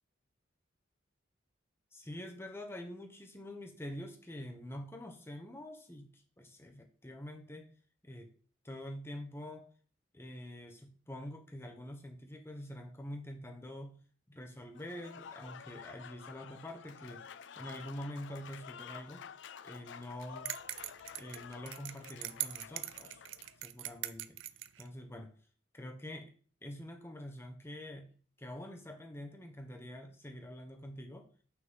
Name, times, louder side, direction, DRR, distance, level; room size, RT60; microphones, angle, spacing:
voice 1, 1.9-7.7 8.0-8.3 8.6-9.7 10.1-14.0 14.3-17.2 17.6-19.3 19.6-20.5 21.2-23.2 23.6-24.4 24.8-25.3 25.7-26.3 26.6-28.1 28.4-31.3, left 1 dB, 10° left, 4 dB, 0.9 m, -46 dB
Applause / Crowd, 14.7-23.6, left 7 dB, 65° left, 0.4 m, -51 dB
sound 1, 20.5-24.9, right 14 dB, 70° right, 0.4 m, -41 dB
6.0 x 5.8 x 3.8 m, 0.42 s
head